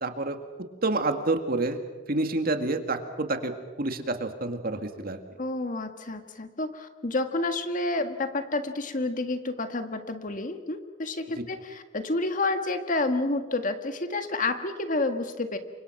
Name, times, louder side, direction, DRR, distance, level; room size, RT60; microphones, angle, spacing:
voice 1, 0.0-0.4 0.8-1.8 2.1-3.5 3.8-5.2, right 2 dB, 55° right, 7 dB, 2.0 m, -28 dB
voice 2, 5.4-15.6, left 2 dB, 45° left, 8 dB, 1.7 m, -29 dB
29.0 x 25.0 x 6.0 m, 1.3 s
head